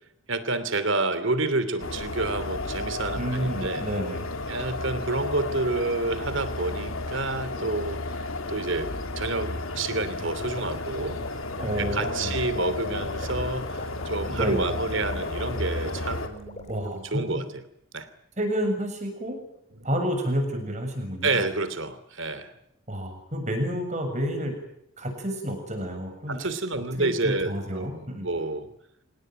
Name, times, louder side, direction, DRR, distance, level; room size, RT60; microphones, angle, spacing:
voice 1, 0.3-3.8 4.5-8.0 8.5-8.9 9.2-11.4 11.8-17.6 17.9-18.1 21.2-22.5 26.3-28.7, right 2 dB, 65° right, 13 dB, 2.9 m, -29 dB
sound 1, 1.8-16.3, left 2 dB, 80° left, 2.9 m, -32 dB
voice 2, 3.1-4.3 11.6-12.4 14.3-14.7 16.7-17.4 18.4-19.4 19.8-21.5 22.9-24.5 25.0-26.4 27.0-28.3, equal, 35° right, 5 dB, 7.1 m, -30 dB
sound 2, 10.2-17.0, left 1 dB, 30° left, 3.7 m, -44 dB
26.0 x 19.0 x 9.3 m, 0.77 s
head